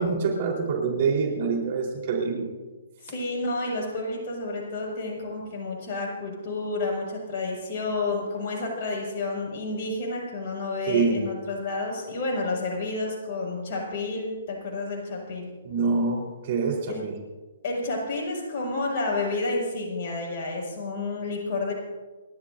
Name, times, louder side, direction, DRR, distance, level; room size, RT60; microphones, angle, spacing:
voice 1, 0.0-2.5 10.9-11.2 15.6-17.1, right 4 dB, 50° right, 0 dB, 4.1 m, -25 dB
voice 2, 3.0-15.5 16.9-17.0 17.6-21.7, left 3 dB, 50° left, -1 dB, 6.2 m, -30 dB
29.0 x 12.5 x 2.7 m, 1.3 s
hypercardioid pair, 130°, 0 cm